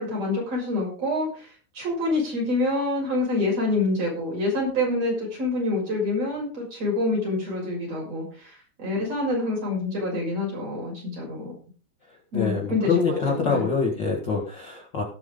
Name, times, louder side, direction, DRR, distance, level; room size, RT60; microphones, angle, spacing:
voice 1, 0.0-1.5 1.7-11.5 12.3-12.9 13.3-13.6, left 2 dB, 35° right, -2 dB, 7.1 m, -26 dB
voice 2, 12.3-15.0, left 5 dB, 85° left, -2 dB, 1.0 m, -25 dB
19.0 x 7.3 x 3.8 m, 0.38 s
omnidirectional pair, 5.3 m